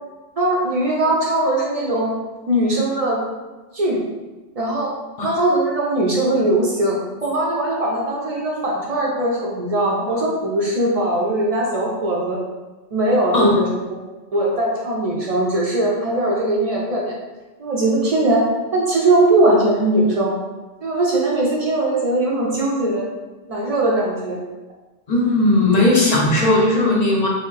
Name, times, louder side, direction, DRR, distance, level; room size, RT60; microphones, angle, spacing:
voice 1, 0.4-2.2 2.5-3.2 3.7-4.0 4.6-4.9 5.2-12.4 12.9-14.0 14.3-17.1 17.6-18.4 18.7-20.3 20.8-23.0 23.5-24.4, right 1 dB, 60° right, -3 dB, 0.4 m, -20 dB
voice 2, 25.1-27.3, left 2 dB, 45° left, -3 dB, 0.6 m, -17 dB
2.6 x 2.0 x 3.8 m, 1.2 s
omnidirectional pair, 1.2 m